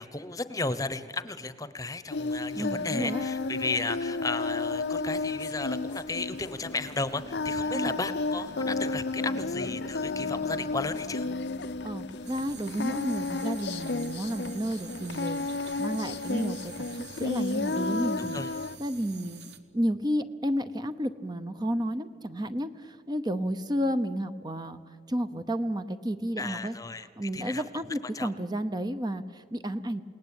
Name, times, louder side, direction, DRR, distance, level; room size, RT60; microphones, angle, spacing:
voice 1, 0.0-11.3 18.2-18.5 26.4-27.6 28.1-28.3, left 3 dB, 20° left, 13 dB, 1.0 m, -34 dB
Singing, 2.1-18.8, left 3 dB, 80° left, 0.7 m, -32 dB
voice 2, 2.5-3.2 7.7-7.9 11.8-18.4 18.8-24.8 25.1-26.7 27.2-30.0, equal, 25° right, 10 dB, 0.8 m, -32 dB
sound 1, 5.9-14.4, left 2 dB, 45° left, 0.6 m, -48 dB
sound 2, 12.3-19.6, right 7 dB, 75° right, 1.7 m, -48 dB
29.5 x 19.0 x 9.0 m, 2.1 s
head